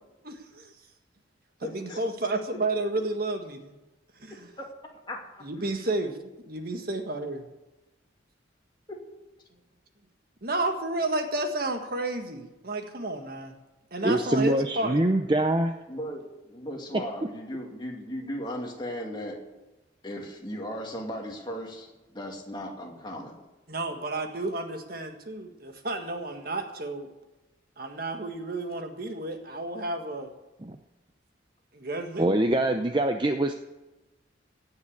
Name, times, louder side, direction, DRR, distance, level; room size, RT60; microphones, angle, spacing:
voice 1, 0.2-0.7 1.6-3.7 4.2-4.5 5.4-7.4 10.4-13.5 13.9-15.0 23.7-27.1 27.8-30.3 31.7-32.4, right 2 dB, 50° right, 5 dB, 1.6 m, -31 dB
voice 2, 1.6-2.0 4.3-4.7 5.1-5.2 8.9-9.0 15.9-19.4 20.0-23.4, equal, 25° left, 0 dB, 2.6 m, -37 dB
voice 3, 14.0-15.8 16.9-17.0 30.6-30.8 32.2-33.5, right 1 dB, 25° right, 6 dB, 0.6 m, -24 dB
17.0 x 6.7 x 8.6 m, 1.1 s
head